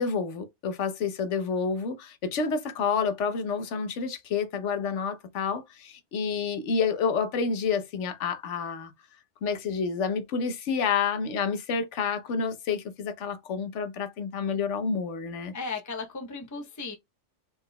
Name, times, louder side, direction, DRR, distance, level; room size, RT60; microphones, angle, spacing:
voice 1, 0.0-8.9 9.4-15.5, left 5 dB, 80° left, 1.1 m, -29 dB
voice 2, 15.5-16.9, left 4 dB, 20° left, 0.7 m, -35 dB
4.4 x 3.6 x 2.2 m
omnidirectional pair, 1.2 m